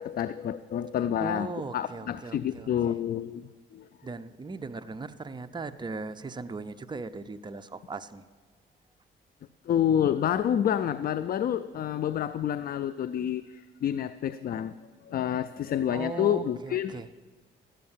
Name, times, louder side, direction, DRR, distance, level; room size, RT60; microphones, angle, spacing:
voice 1, 0.0-3.9 9.7-14.7 15.0-17.1, left 10 dB, 50° left, 13 dB, 0.4 m, -29 dB
voice 2, 1.2-3.0 4.0-8.3 15.9-17.1, right 3 dB, 20° right, 10 dB, 0.6 m, -38 dB
12.0 x 8.6 x 7.3 m, 1.4 s
cardioid pair, 90°, 20 cm